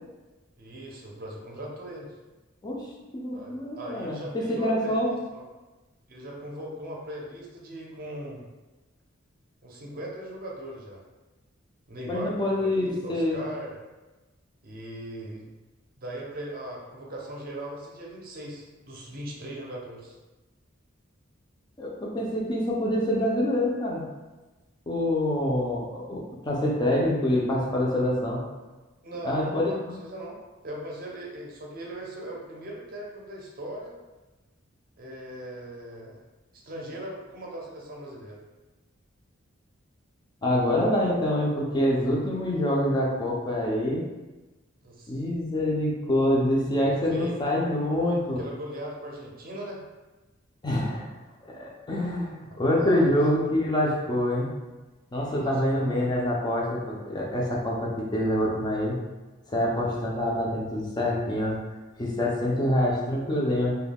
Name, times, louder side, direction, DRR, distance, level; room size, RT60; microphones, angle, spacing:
voice 1, 0.6-2.1 3.3-5.4 6.1-8.4 9.6-11.0 11.9-13.8 14.6-15.5 16.0-20.2 29.0-30.4 30.6-33.9 35.0-36.2 36.5-38.4 44.8-45.2 46.8-47.8 48.4-49.8 52.5-53.1 55.4-56.1, right 1 dB, 45° right, -3 dB, 0.6 m, -39 dB
voice 2, 3.1-5.1 12.1-13.4 21.8-24.0 24.9-28.4 29.2-29.7 40.4-44.0 45.1-48.4 50.6-51.1 51.5-54.5 55.1-59.0 59.5-61.6 62.0-63.8, left 1 dB, 20° left, -4 dB, 0.4 m, -26 dB
2.2 x 2.2 x 3.4 m, 1.2 s
head